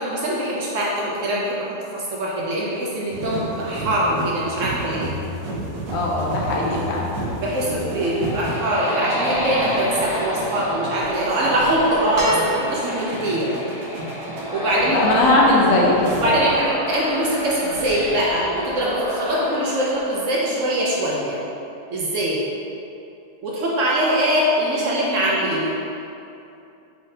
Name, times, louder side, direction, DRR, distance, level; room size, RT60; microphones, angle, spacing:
voice 1, 0.0-5.1 6.5-6.7 7.4-13.5 14.5-15.1 16.1-21.4 21.9-22.4 23.4-25.8, right 1 dB, 65° right, -5 dB, 0.9 m, -23 dB
sound 1, 3.1-16.7 17.0-17.3, right 1 dB, 80° right, 1.2 m, -32 dB
voice 2, 5.9-7.1 14.9-16.4, left 2 dB, 65° left, -4 dB, 1.0 m, -19 dB
sound 2, 7.7-21.0, equal, ahead, 0.8 m, -30 dB
sound 3, 12.1-13.2 14.7-14.8, right 2 dB, 25° right, 1.1 m, -27 dB
4.6 x 3.6 x 2.7 m, 2.7 s
omnidirectional pair, 1.6 m